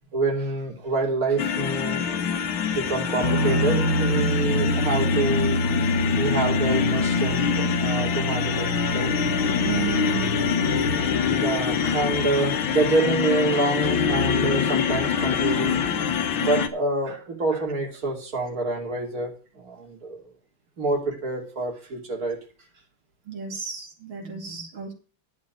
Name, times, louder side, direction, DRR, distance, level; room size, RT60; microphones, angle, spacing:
voice 1, 0.1-2.0 2.7-5.6 6.2-9.1 10.9-11.0 11.3-15.8 16.4-20.3 20.8-22.4, right 2 dB, 45° right, 3.3 m, -27 dB
sound 1, 1.4-16.7, left 7 dB, 80° left, 1.9 m, -25 dB
Guitar, 3.2-11.1, right 1 dB, 65° left, 3.2 m, -27 dB
voice 2, 9.6-10.3 23.3-24.9, right 6 dB, 85° right, 3.3 m, -32 dB
11.0 x 6.2 x 6.8 m
omnidirectional pair, 2.2 m